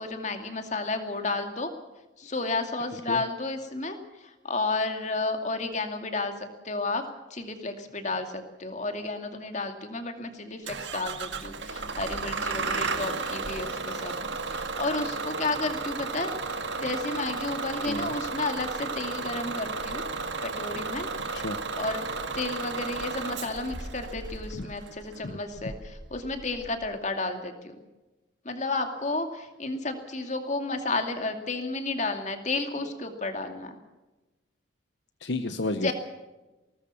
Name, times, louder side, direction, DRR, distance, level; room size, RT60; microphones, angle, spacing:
voice 1, 0.0-1.7 2.2-7.0 7.3-14.1 14.5-20.0 20.4-21.4 21.8-22.1 22.3-27.8 28.4-33.8 35.8-35.9, left 3 dB, 35° left, 6 dB, 2.5 m, -32 dB
Bus / Engine starting, 10.7-26.9, right 4 dB, 65° right, 1.9 m, -34 dB
voice 2, 35.2-35.9, left 2 dB, 60° left, 9 dB, 0.9 m, -31 dB
21.0 x 19.0 x 7.0 m, 1.1 s
head